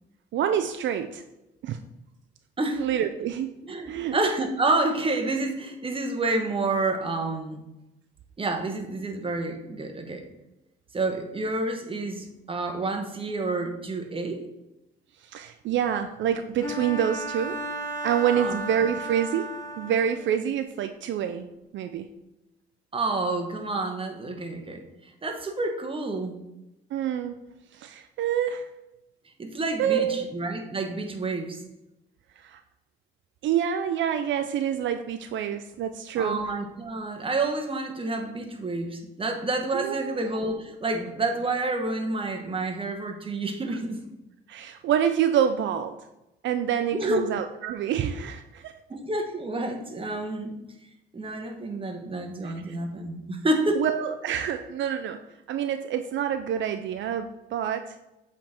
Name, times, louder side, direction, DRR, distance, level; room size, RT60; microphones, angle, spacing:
voice 1, 0.3-1.2 1.6-1.8 2.8-3.6 3.9-4.2 15.2-17.6 18.0-22.1 26.9-27.4 27.7-28.7 29.8-30.3 32.4-32.6 33.4-36.4 39.7-40.2 44.5-46.0 46.4-48.8 52.4-52.8 53.8-58.0, right 9 dB, 70° right, 8 dB, 0.4 m, -27 dB
voice 2, 3.6-7.7 8.4-10.2 10.9-14.4 18.3-18.6 22.9-26.4 29.4-31.6 36.2-44.0 46.9-47.3 48.9-50.5 51.1-53.8, right 2 dB, 25° right, 4 dB, 1.2 m, -29 dB
Bowed string instrument, 16.6-20.3, right 2 dB, 15° left, 1.4 m, -34 dB
7.3 x 3.6 x 4.4 m, 0.92 s
cardioid pair, 90°, 20 cm